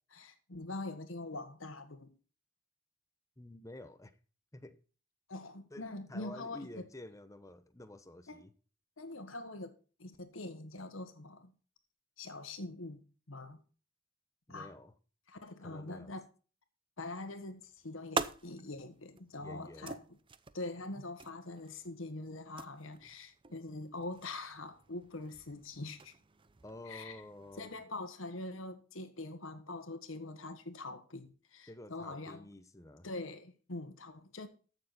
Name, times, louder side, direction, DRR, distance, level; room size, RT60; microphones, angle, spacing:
voice 1, 0.1-2.1 5.3-6.7 8.3-8.4 9.0-9.7 10.0-11.5 12.2-13.0 13.3-13.6 14.5-14.7 15.3-16.2 17.0-20.0 20.5-26.1 26.8-27.2 27.6-32.5 33.0-34.5, left 2 dB, 80° left, 1.5 m, -44 dB
voice 2, 3.4-4.1 4.5-4.8 5.7-8.5 14.5-14.9 15.6-16.1 19.4-20.0 26.6-27.7 31.7-33.1, left 1 dB, 15° left, 0.9 m, -50 dB
sound 1, 17.4-27.8, right 4 dB, 25° right, 0.6 m, -45 dB
14.5 x 6.8 x 4.2 m
head